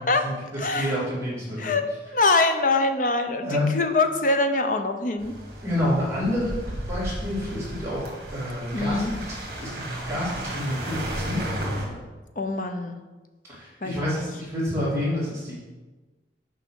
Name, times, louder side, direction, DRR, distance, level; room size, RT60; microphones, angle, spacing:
voice 1, 0.0-1.8 3.4-3.8 5.6-6.6 6.9-9.0 9.3-9.8 10.1-11.4 13.5-15.6, left 1 dB, 15° right, -9 dB, 2.6 m, -28 dB
voice 2, 0.6-0.9 1.6-5.3 8.7-9.1 12.4-13.0 13.8-14.3, left 3 dB, 45° left, 7 dB, 0.7 m, -24 dB
sound 1, 5.2-11.9, right 1 dB, 55° right, 1.8 m, -33 dB
6.9 x 4.8 x 6.3 m, 1.2 s
head